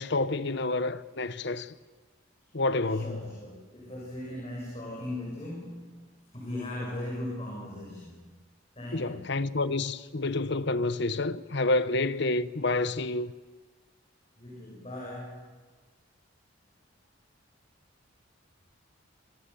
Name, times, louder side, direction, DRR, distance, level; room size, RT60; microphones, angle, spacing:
voice 1, 0.0-1.7 2.5-3.2 8.9-13.3, left 2 dB, 60° left, 1.0 m, -28 dB
voice 2, 2.9-8.4 8.7-9.3 14.4-15.6, left 1 dB, 30° left, 7.5 m, -39 dB
27.5 x 27.0 x 7.1 m
head